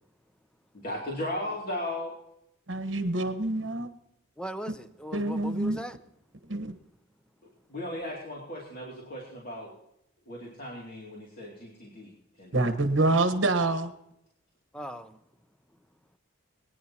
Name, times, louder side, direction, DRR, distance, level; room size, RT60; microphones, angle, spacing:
voice 1, 0.7-2.1 7.7-9.7 10.3-12.1 12.4-12.7, left 1 dB, 45° left, -4 dB, 2.6 m, -36 dB
voice 2, 2.7-3.9 5.1-5.8 6.5-6.7 12.5-13.9, right 2 dB, 65° right, 8 dB, 1.3 m, -26 dB
voice 3, 4.4-6.0 14.7-15.2, equal, 5° left, 10 dB, 0.6 m, -38 dB
22.0 x 10.0 x 2.9 m, 0.80 s
head